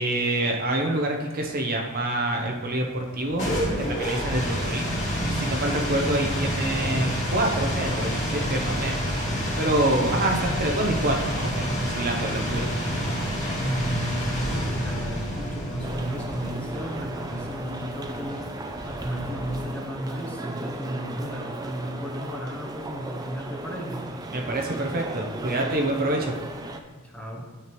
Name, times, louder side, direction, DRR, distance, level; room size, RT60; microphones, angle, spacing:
voice 1, 0.0-3.5 3.9-9.2 9.6-12.7 24.3-26.3, right 1 dB, 40° right, 2 dB, 0.7 m, -26 dB
sound 1, 3.1-19.8, equal, 35° left, 1.9 m, -29 dB
voice 2, 13.6-24.1 27.0-27.5, equal, 5° left, -1 dB, 0.9 m, -33 dB
sound 2, 15.8-26.8, right 2 dB, 15° right, 0.4 m, -36 dB
9.5 x 5.8 x 3.1 m, 1.4 s
head